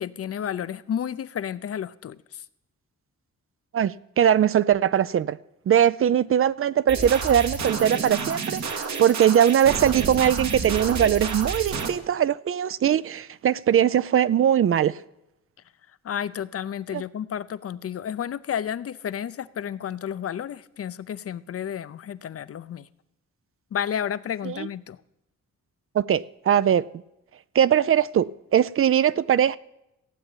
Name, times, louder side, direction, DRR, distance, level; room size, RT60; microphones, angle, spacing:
voice 1, 0.0-2.4 16.0-22.9 23.7-25.0, left 9 dB, 55° left, 0.6 m, -31 dB
voice 2, 3.7-5.4 5.7-15.0 16.9-17.0 24.4-24.7 25.9-26.9 27.5-29.6, right 9 dB, 50° right, 0.4 m, -21 dB
sound 1, 6.9-11.9, right 4 dB, 75° right, 1.9 m, -30 dB
16.0 x 8.2 x 9.0 m
wide cardioid pair, 135°, 29 cm